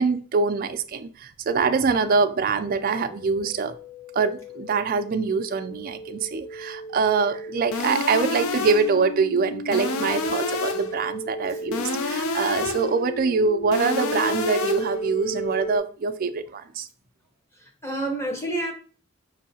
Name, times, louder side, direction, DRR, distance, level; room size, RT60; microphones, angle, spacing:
voice 1, 0.0-3.7 4.1-16.9, right 4 dB, 40° right, 0.3 m, -24 dB
sound 1, 2.6-15.8, right 1 dB, 90° left, 0.9 m, -35 dB
sound 2, 7.7-9.0 9.7-11.0 11.7-13.0 13.7-15.0, left 3 dB, 75° left, 0.4 m, -28 dB
voice 2, 17.5-18.7, right 1 dB, 10° left, 0.9 m, -29 dB
5.1 x 2.7 x 2.7 m
head